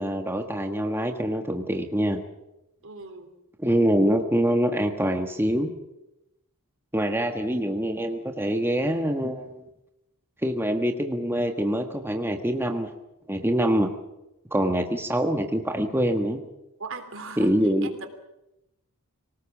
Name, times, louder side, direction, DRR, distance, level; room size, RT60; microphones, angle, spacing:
voice 1, 0.0-2.2 3.6-5.7 6.9-9.6 10.4-12.9 13.3-13.9 14.5-16.4 17.4-17.9, equal, 10° right, 4 dB, 1.4 m, -25 dB
voice 2, 2.8-3.3 14.6-14.7 16.8-17.5 17.9-18.1, right 3 dB, 60° right, 8 dB, 3.3 m, -38 dB
25.0 x 18.5 x 7.3 m, 0.90 s
head